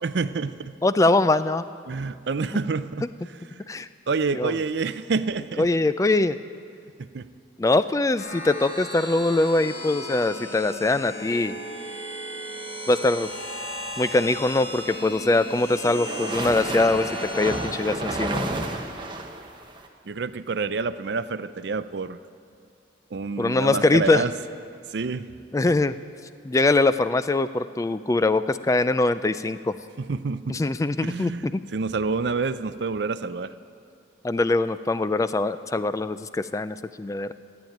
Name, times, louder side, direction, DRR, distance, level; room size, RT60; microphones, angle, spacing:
voice 1, 0.0-0.7 1.9-3.1 3.8-5.7 7.0-7.3 20.1-22.2 23.1-24.3 24.9-25.3 30.0-30.6 31.0-33.5, right 4 dB, 65° right, 13 dB, 0.5 m, -28 dB
voice 2, 0.8-1.6 3.7-3.9 4.3-4.6 5.6-6.4 7.6-11.6 12.9-13.3 14.0-18.6 23.4-24.2 25.5-25.9 26.4-29.8 30.5-31.6 34.2-37.3, left 2 dB, 15° left, 13 dB, 0.3 m, -22 dB
sound 1, 8.2-17.6, equal, 80° left, 4.7 m, -36 dB
sound 2, 14.8-19.9, right 2 dB, 25° right, 1.0 m, -32 dB
14.5 x 8.9 x 9.2 m, 2.5 s
head